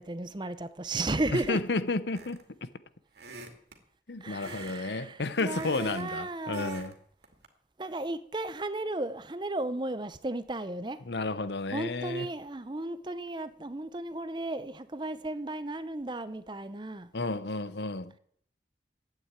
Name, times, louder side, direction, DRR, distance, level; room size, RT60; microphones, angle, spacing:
voice 1, 0.0-1.6 4.2-6.9 7.8-11.0 11.7-17.1, right 2 dB, 25° right, 0.7 m, -34 dB
voice 2, 1.3-2.7 4.1-6.9 11.1-12.3 17.1-18.1, left 3 dB, 75° left, 0.9 m, -32 dB
sound 1, 2.1-2.6 3.1-3.8 4.4-4.8 5.1-6.1 6.5-6.9 7.2-7.5, right 3 dB, 75° right, 2.4 m, -46 dB
11.5 x 9.1 x 9.0 m
head